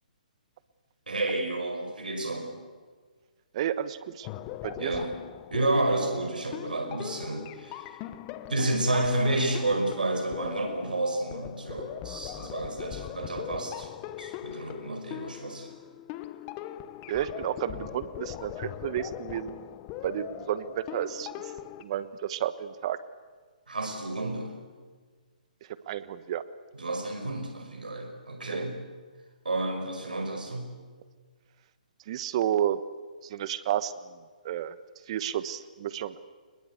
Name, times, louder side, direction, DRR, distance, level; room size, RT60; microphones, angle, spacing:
voice 1, 1.1-2.6 4.8-5.1 5.5-7.9 8.5-13.9 14.2-15.7 23.7-24.6 26.7-28.8 29.4-30.8, right 2 dB, 85° right, 5 dB, 5.5 m, -30 dB
voice 2, 3.5-4.3 4.6-4.9 17.1-19.6 20.0-21.3 21.8-23.0 25.9-26.4 28.5-28.6 32.1-32.8 33.2-33.9 34.4-34.7 35.1-36.2, right 11 dB, 45° right, 15 dB, 1.2 m, -31 dB
sound 1, 4.2-21.8, left 13 dB, 30° left, 1.1 m, -40 dB
24.0 x 21.5 x 8.2 m, 1.5 s
hypercardioid pair, 140°, 5 cm